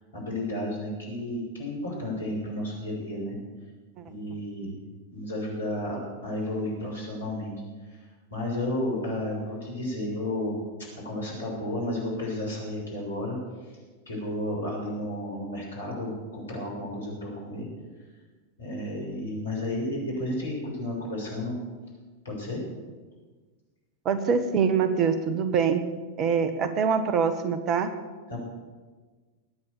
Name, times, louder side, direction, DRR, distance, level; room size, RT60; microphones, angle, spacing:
voice 1, 0.1-3.3 4.1-4.8 5.1-7.5 8.3-10.6 11.0-13.4 14.1-17.7 18.6-21.5 22.2-22.6 28.3-28.4, left 1 dB, 70° left, -2 dB, 6.7 m, -32 dB
voice 2, 24.0-25.8 26.2-27.9, right 6 dB, 35° right, 10 dB, 1.5 m, -24 dB
20.5 x 9.0 x 7.1 m, 1.4 s
figure-of-eight pair, 90°, 0 cm